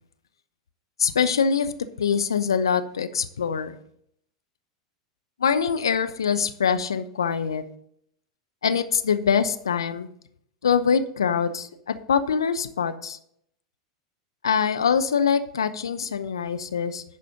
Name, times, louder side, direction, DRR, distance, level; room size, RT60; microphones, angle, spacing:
voice 1, 1.0-1.7 2.0-3.7 5.4-7.6 8.6-10.1 10.6-13.2 14.4-17.0, left 6 dB, 75° left, 10 dB, 0.7 m, -24 dB
11.0 x 4.3 x 6.7 m, 0.68 s
figure-of-eight pair, 85°, 2 cm